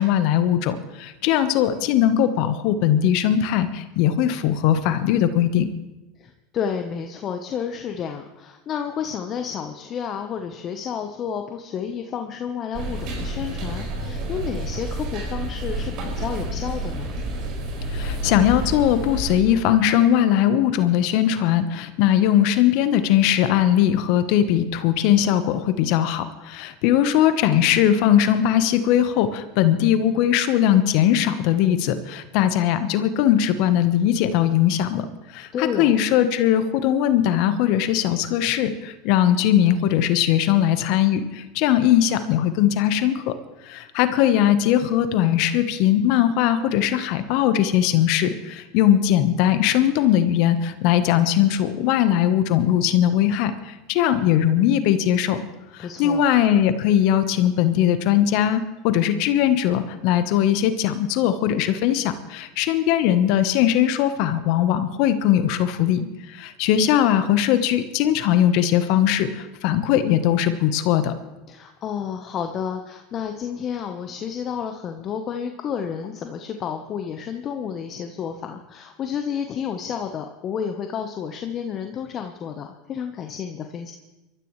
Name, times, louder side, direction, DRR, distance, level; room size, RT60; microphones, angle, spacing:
voice 1, 0.0-5.7 17.9-35.0 35.3-43.3 43.6-55.4 55.7-71.1, left 10 dB, 60° left, 10 dB, 1.1 m, -20 dB
voice 2, 6.2-17.1 35.5-36.0 55.8-56.3 71.5-83.9, left 7 dB, 40° left, 5 dB, 1.1 m, -31 dB
sound 1, 12.7-19.4, right 1 dB, 55° right, 5.6 m, -29 dB
23.5 x 13.5 x 3.3 m, 1.0 s
hypercardioid pair, 90°, 0 cm